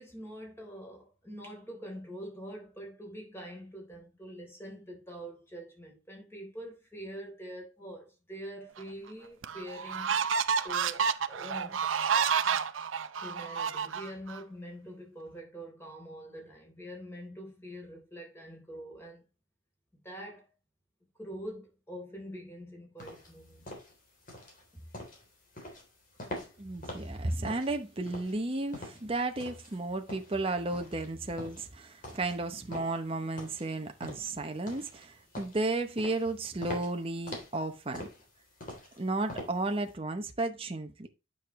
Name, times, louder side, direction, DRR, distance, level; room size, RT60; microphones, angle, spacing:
voice 1, 0.0-10.2 10.6-11.8 13.2-19.2 19.9-20.5 21.2-23.7, equal, 10° left, 3.8 m, -45 dB
sound 1, 8.8-8.9 9.4-14.4, right 7 dB, 85° right, 0.6 m, -30 dB
sound 2, 23.0-39.9, left 1 dB, 45° left, 3.3 m, -45 dB
voice 2, 26.6-38.1 39.0-41.1, right 2 dB, 30° right, 0.8 m, -33 dB
9.1 x 6.3 x 3.1 m
head